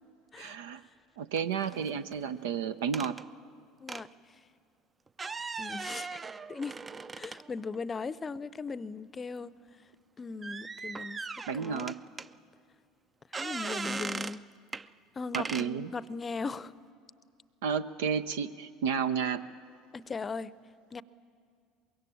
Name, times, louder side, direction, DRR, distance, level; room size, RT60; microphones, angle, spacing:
voice 1, 0.4-0.8 1.2-3.2 11.5-12.0 15.3-15.9 17.6-19.4, right 7 dB, 70° right, 11 dB, 0.6 m, -32 dB
sound 1, 1.4-2.2 2.9-3.2 3.9-4.1 5.1-7.8 8.4-8.5 10.4-12.3 13.3-14.4 14.7-14.9 15.3-15.7, right 4 dB, 25° right, 0.5 m, -39 dB
voice 2, 5.6-6.2 6.5-6.8 7.1-9.5 10.2-11.2 11.5-11.9 13.4-14.4 15.1-16.7 19.9-20.5 20.9-21.0, left 4 dB, 25° left, 18 dB, 0.7 m, -38 dB
24.0 x 22.0 x 8.7 m, 2.2 s
figure-of-eight pair, 65°, 0 cm